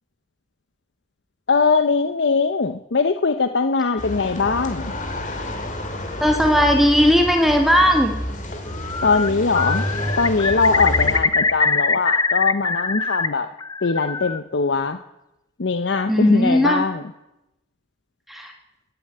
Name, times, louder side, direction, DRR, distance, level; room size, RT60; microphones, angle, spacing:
voice 1, 1.5-4.9 9.0-9.8 10.2-13.5 13.8-15.0 15.6-17.0, left 4 dB, 75° left, 9 dB, 0.7 m, -21 dB
sound 1, 4.0-11.2, left 1 dB, 40° left, 2.6 m, -29 dB
voice 2, 6.2-8.2 16.1-16.8 18.3-18.5, equal, ahead, 3 dB, 1.8 m, -17 dB
Bird, 8.7-9.3 9.5-13.3 13.6-14.4, left 4 dB, 20° left, 0.6 m, -22 dB
14.0 x 11.0 x 9.4 m, 0.95 s
head